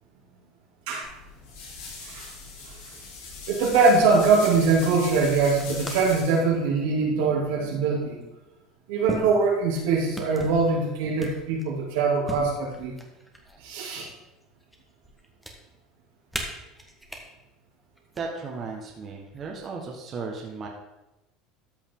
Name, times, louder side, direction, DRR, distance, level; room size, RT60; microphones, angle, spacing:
sound 1, 1.0-6.4, left 4 dB, 70° left, 3.1 m, -40 dB
voice 1, 3.5-8.2 8.9-12.9 13.6-14.1, right 4 dB, 85° right, -2 dB, 2.7 m, -22 dB
sound 2, 4.4-4.5 5.3-6.2 6.6-6.9 7.9-8.0 9.1-9.8 10.1-10.7 11.2-11.8 12.3-13.6 14.0-14.8 15.0-15.5 16.3-17.2 18.0-18.2 19.3-19.8, equal, ahead, 1.4 m, -38 dB
voice 2, 18.1-20.7, right 4 dB, 35° right, -1 dB, 1.5 m, -35 dB
13.5 x 5.4 x 3.8 m, 0.99 s
supercardioid pair, 125°, 0 cm